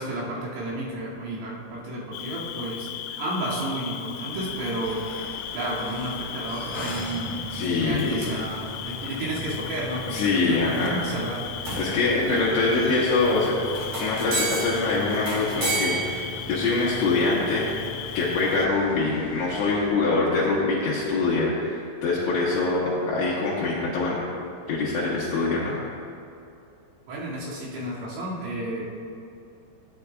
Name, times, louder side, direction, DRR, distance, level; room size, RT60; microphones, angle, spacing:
voice 1, 0.0-7.4 7.8-11.8 12.3-12.5 27.1-28.8, right 1 dB, 90° right, -8 dB, 5.1 m, -32 dB
Cricket, 2.1-18.7, left 11 dB, 90° left, 3.2 m, -37 dB
sound 1, 4.3-19.9, left 1 dB, 50° left, 2.5 m, -43 dB
sound 2, 6.6-18.6, right 1 dB, 45° right, 3.0 m, -35 dB
voice 2, 7.5-8.2 10.1-11.0 11.8-13.5 13.9-17.7 18.1-24.2 24.7-25.8, left 3 dB, 75° left, -7 dB, 3.3 m, -24 dB
15.5 x 9.8 x 2.4 m, 2.7 s
omnidirectional pair, 5.7 m